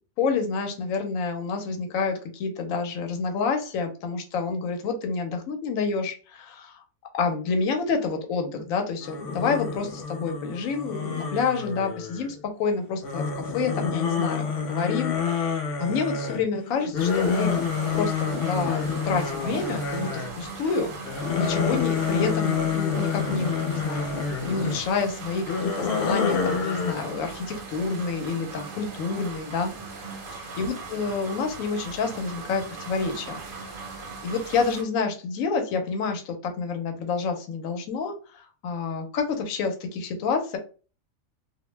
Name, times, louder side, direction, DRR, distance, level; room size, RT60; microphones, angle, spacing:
voice 1, 0.2-6.8 7.1-24.1 24.5-29.7 30.3-33.4 33.6-33.9 34.2-40.6, left 4 dB, 85° left, 5 dB, 1.0 m, -28 dB
sound 1, 9.0-12.4 13.0-20.5 20.9-24.8 25.3-26.9, left 6 dB, 60° left, 0.6 m, -28 dB
sound 2, 17.0-34.8, right 4 dB, 55° right, 0.6 m, -39 dB
2.4 x 2.1 x 3.1 m, 0.37 s
omnidirectional pair, 1.4 m